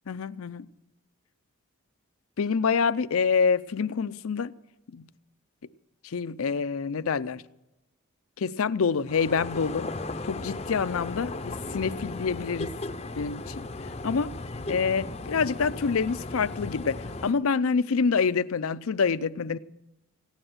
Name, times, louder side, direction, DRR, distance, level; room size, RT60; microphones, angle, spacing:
voice 1, 0.1-0.7 2.4-4.5 4.9-5.1 6.0-7.4 8.4-9.9 10.3-12.8 13.2-14.3 14.7-19.6, left 5 dB, 75° left, 0.5 m, -27 dB
sound 1, 9.1-17.3, left 2 dB, 30° left, 0.6 m, -36 dB
16.5 x 9.9 x 7.8 m
head